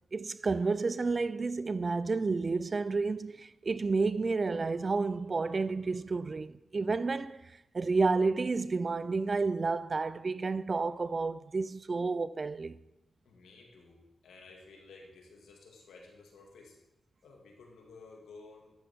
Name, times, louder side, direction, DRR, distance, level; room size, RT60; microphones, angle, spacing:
voice 1, 0.1-12.8, right 4 dB, 45° right, 0.4 m, -31 dB
voice 2, 13.3-16.8 17.2-18.7, left 3 dB, 90° left, 2.0 m, -54 dB
12.0 x 8.4 x 3.6 m
cardioid pair, 65°, 0 cm